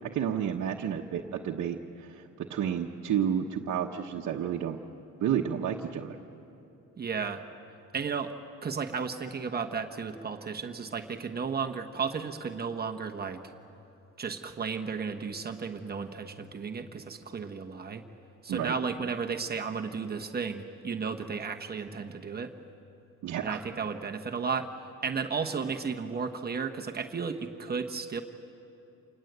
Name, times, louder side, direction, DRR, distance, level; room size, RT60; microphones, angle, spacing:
voice 1, 0.0-4.8 5.2-6.2 18.5-18.7 23.2-23.6, right 9 dB, 65° right, 0 dB, 1.2 m, -31 dB
voice 2, 7.0-7.4 7.9-8.3 8.6-13.4 14.2-18.0 18.4-22.5 23.4-24.7 25.0-28.2, right 5 dB, 30° right, 4 dB, 1.2 m, -34 dB
27.5 x 20.0 x 8.1 m, 2.9 s
cardioid pair, 135°, 31 cm